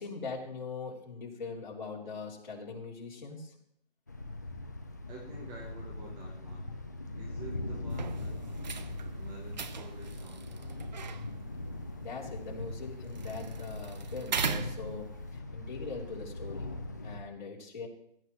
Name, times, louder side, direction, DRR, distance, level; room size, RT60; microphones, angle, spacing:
voice 1, 0.0-3.5 12.0-16.7 17.0-17.9, left 4 dB, 45° left, -2 dB, 3.3 m, -41 dB
Thunder, 4.1-17.2, left 2 dB, 20° left, 0.4 m, -40 dB
voice 2, 5.1-6.7 7.1-8.5 9.1-10.8, right 3 dB, 10° right, -2 dB, 1.0 m, -49 dB
sound 1, 7.9-15.4, right 6 dB, 45° right, 0.9 m, -40 dB
16.5 x 12.0 x 3.1 m, 0.74 s
hypercardioid pair, 160°, 31 cm